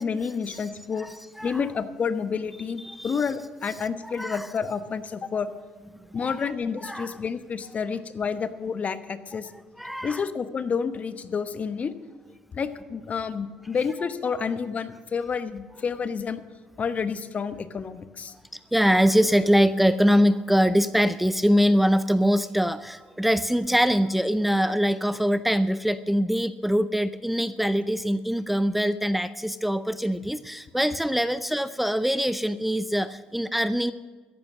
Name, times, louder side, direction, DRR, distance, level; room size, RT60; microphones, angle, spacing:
voice 1, 0.0-1.1 1.4-5.5 6.1-9.5 10.0-11.9 12.5-16.4 16.8-18.3, left 6 dB, 40° left, 11 dB, 1.0 m, -29 dB
voice 2, 1.0-1.6 2.8-3.2 4.0-4.5 6.2-6.3 6.8-7.1 9.8-10.2 18.7-33.9, equal, 5° right, 14 dB, 0.5 m, -23 dB
14.5 x 11.0 x 6.1 m, 1.4 s
hypercardioid pair, 65°, 4 cm